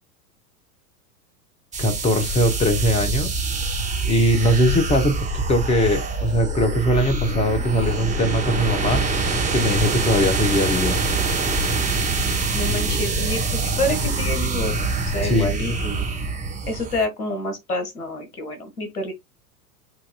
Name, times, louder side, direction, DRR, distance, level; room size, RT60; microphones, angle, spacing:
sound 1, 1.7-17.0, right 3 dB, 15° right, 1.7 m, -24 dB
voice 1, 1.8-3.3 4.0-9.1 9.5-11.0 15.2-15.5, equal, 15° left, 1.0 m, -21 dB
voice 2, 12.5-14.8 15.1-16.0 16.7-19.1, left 1 dB, 75° left, 1.7 m, -28 dB
7.8 x 2.8 x 2.3 m
figure-of-eight pair, 85°, 45 cm